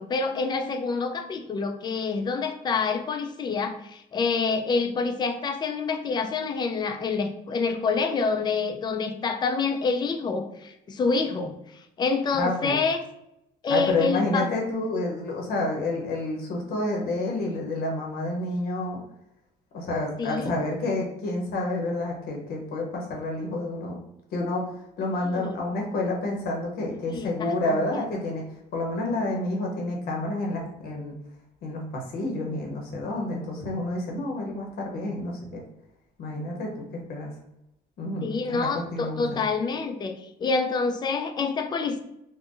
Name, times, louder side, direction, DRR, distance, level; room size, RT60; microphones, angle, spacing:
voice 1, 0.0-11.5 12.0-13.0 13.6-14.5 20.2-20.5 25.3-25.6 27.1-27.8 38.2-42.0, left 4 dB, 25° left, 6 dB, 0.3 m, -27 dB
voice 2, 12.3-12.8 13.7-19.0 19.7-24.0 24.3-24.7 25.0-28.5 28.7-31.1 31.6-35.6 36.2-37.3 38.0-39.2, left 2 dB, 65° left, 0 dB, 0.8 m, -29 dB
2.5 x 2.1 x 3.6 m, 0.82 s
cardioid pair, 110°, 17 cm